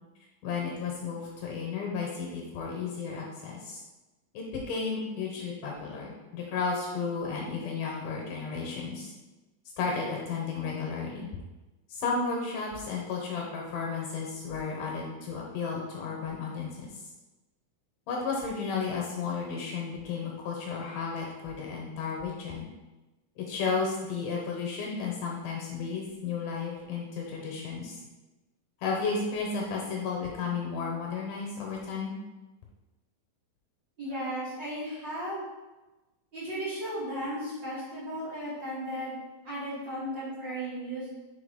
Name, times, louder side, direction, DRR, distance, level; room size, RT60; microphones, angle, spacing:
voice 1, 0.4-3.8 4.3-9.1 9.8-11.3 11.9-17.0 18.1-22.7 23.4-28.0 28.8-32.1, left 5 dB, 70° left, -1 dB, 2.4 m, -33 dB
voice 2, 34.0-35.4 36.3-39.1 39.4-41.1, equal, 35° right, -10 dB, 2.3 m, -35 dB
5.4 x 4.8 x 5.1 m, 1.1 s
omnidirectional pair, 4.2 m